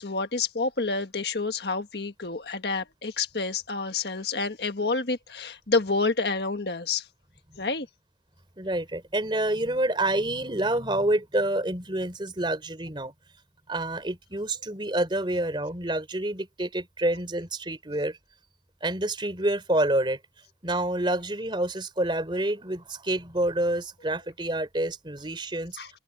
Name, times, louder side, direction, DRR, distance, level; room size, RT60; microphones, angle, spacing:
voice 1, 0.0-7.0 7.6-7.9 25.8-25.9, left 3 dB, 65° left, 1.6 m, -28 dB
voice 2, 8.6-13.1 13.7-18.2 18.8-20.2 20.6-25.8, right 1 dB, 25° right, 3.7 m, -28 dB
head